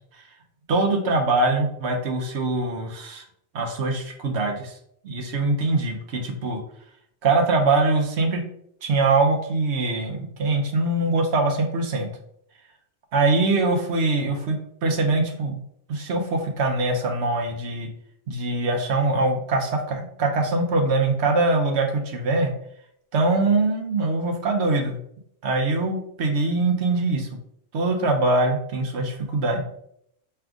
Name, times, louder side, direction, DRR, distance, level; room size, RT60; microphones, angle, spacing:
voice 1, 0.7-3.2 3.5-4.7 5.0-6.6 7.2-8.4 8.8-12.1 13.1-15.6 15.9-17.9 18.3-22.5 23.1-25.0 25.4-27.3 27.7-29.6, right 3 dB, 60° right, 3 dB, 0.9 m, -23 dB
4.9 x 3.3 x 2.4 m, 0.72 s
omnidirectional pair, 1.3 m